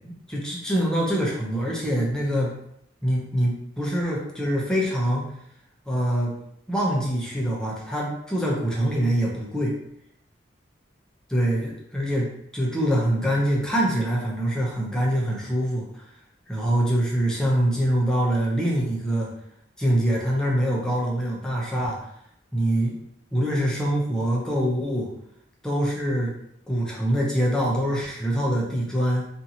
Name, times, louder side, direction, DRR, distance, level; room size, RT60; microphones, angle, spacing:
voice 1, 0.0-2.5 3.0-5.3 5.9-6.3 6.7-9.8 11.3-16.0 16.5-19.3 19.8-22.0 22.5-23.0 23.3-25.1 25.6-26.3 26.7-29.3, equal, 5° left, -4 dB, 0.6 m, -24 dB
2.9 x 2.5 x 2.8 m, 0.74 s
head